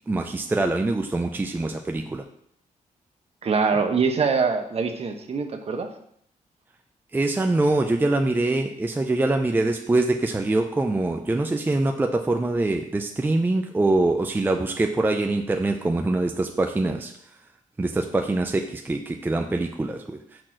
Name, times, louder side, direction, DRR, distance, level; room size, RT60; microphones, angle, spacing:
voice 1, 0.1-2.2 7.1-17.1 17.8-20.4, right 2 dB, 15° right, 4 dB, 0.5 m, -24 dB
voice 2, 3.4-5.9, right 5 dB, 45° right, 5 dB, 1.0 m, -23 dB
6.1 x 4.3 x 6.3 m, 0.69 s
wide cardioid pair, 135°, 14 cm